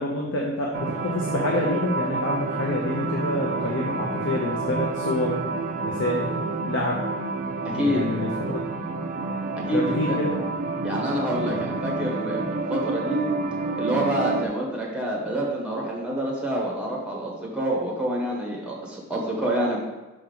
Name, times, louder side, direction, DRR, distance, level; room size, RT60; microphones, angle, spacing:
voice 1, 0.0-5.4 5.8-6.4 6.6-7.1 7.7-8.6 9.7-10.4, left 1 dB, 60° left, -2 dB, 0.8 m, -27 dB
sound 1, 0.7-14.5, right 3 dB, 40° right, 0.4 m, -29 dB
voice 2, 7.6-8.0 9.6-10.2 10.8-13.3 13.8-19.8, right 1 dB, 5° right, -3 dB, 1.3 m, -27 dB
6.3 x 4.4 x 3.9 m, 1.1 s
head